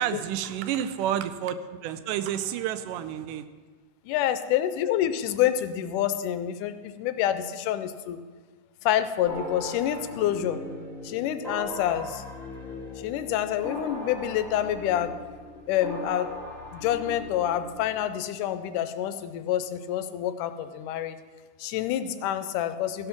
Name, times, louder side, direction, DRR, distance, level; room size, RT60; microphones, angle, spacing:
voice 1, 0.0-1.5 1.8-3.5, right 10 dB, 85° right, 11 dB, 2.1 m, -29 dB
voice 2, 4.1-8.2 8.8-10.6 11.0-12.2 13.0-15.1 15.7-16.3 16.7-21.2 21.6-23.1, left 11 dB, 80° left, 11 dB, 2.1 m, -27 dB
sound 1, 9.3-18.0, left 1 dB, ahead, 1.0 m, -39 dB
15.0 x 5.6 x 5.8 m, 1.4 s
omnidirectional pair, 3.7 m